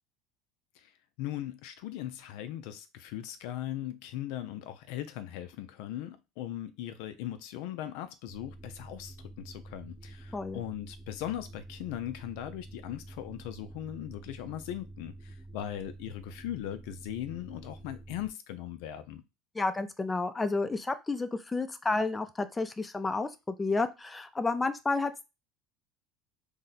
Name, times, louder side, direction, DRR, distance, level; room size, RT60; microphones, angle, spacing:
voice 1, 1.2-19.2, left 12 dB, 75° left, 0.4 m, -39 dB
sound 1, 8.3-18.3, right 2 dB, 10° right, 0.8 m, -48 dB
voice 2, 19.6-25.2, left 3 dB, 15° left, 0.4 m, -31 dB
2.7 x 2.1 x 4.0 m
supercardioid pair, 100°, 0 cm